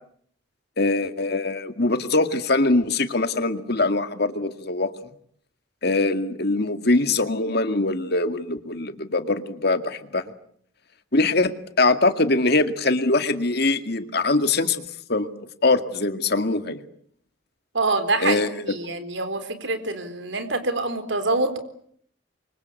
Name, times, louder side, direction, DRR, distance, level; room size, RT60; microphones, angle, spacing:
voice 1, 0.8-4.9 5.8-10.2 11.1-14.8 15.1-15.3 15.6-16.8 18.2-18.5, left 2 dB, 50° left, 9 dB, 2.1 m, -22 dB
voice 2, 17.7-21.6, right 3 dB, 65° right, 10 dB, 4.0 m, -25 dB
28.5 x 24.5 x 8.3 m, 0.66 s
head